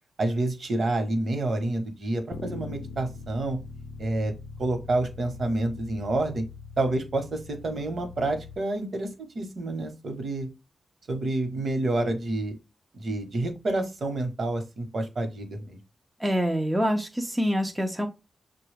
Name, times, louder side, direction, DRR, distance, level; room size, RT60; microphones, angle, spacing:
voice 1, 0.2-3.6 4.0-4.3 4.6-6.4 6.8-9.1 9.3-10.5 11.1-12.5 12.9-15.8, right 2 dB, 50° right, 1.0 m, -28 dB
Bass guitar, 2.3-8.6, left 4 dB, 75° left, 0.5 m, -42 dB
voice 2, 16.2-18.1, equal, 10° right, 0.4 m, -26 dB
6.7 x 2.2 x 3.3 m
wide cardioid pair, 150°, 0 cm